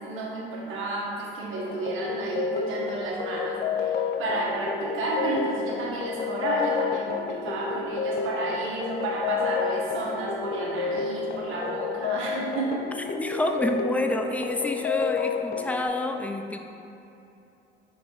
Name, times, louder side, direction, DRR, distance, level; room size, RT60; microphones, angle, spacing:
voice 1, 0.0-3.9 4.2-12.8, right 2 dB, 85° right, -3 dB, 1.4 m, -31 dB
sound 1, 1.6-15.8, left 6 dB, 50° left, 0.6 m, -30 dB
voice 2, 13.0-16.6, left 1 dB, 5° left, 4 dB, 0.5 m, -28 dB
5.9 x 5.3 x 4.7 m, 2.9 s
cardioid pair, 90°, 20 cm